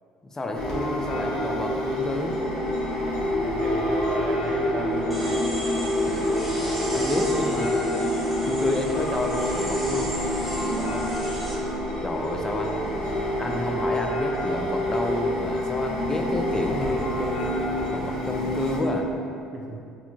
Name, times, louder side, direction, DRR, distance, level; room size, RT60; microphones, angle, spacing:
voice 1, 0.2-2.4 6.9-7.9 8.5-10.1 12.0-13.1 13.4-19.1, left 1 dB, 25° left, 2 dB, 0.4 m, -30 dB
sound 1, 0.5-18.8, left 1 dB, 40° left, 1.0 m, -27 dB
voice 2, 3.4-5.4 10.6-11.2 19.5-19.8, right 2 dB, 40° right, -1 dB, 0.6 m, -35 dB
sound 2, 5.1-11.5, equal, ahead, 0.9 m, -37 dB
4.2 x 2.7 x 2.8 m, 2.6 s
supercardioid pair, 70°, 2 cm